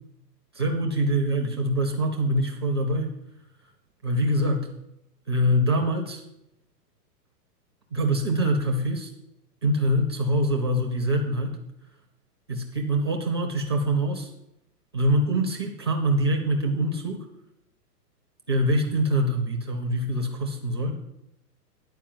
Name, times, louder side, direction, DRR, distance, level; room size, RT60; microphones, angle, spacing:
voice 1, 0.5-3.1 4.0-4.7 5.3-6.2 7.9-9.1 9.6-11.6 12.5-14.3 14.9-17.2 18.5-21.0, right 1 dB, 20° right, 2 dB, 0.4 m, -24 dB
10.0 x 4.5 x 7.6 m, 0.83 s
hypercardioid pair, 160°, 49 cm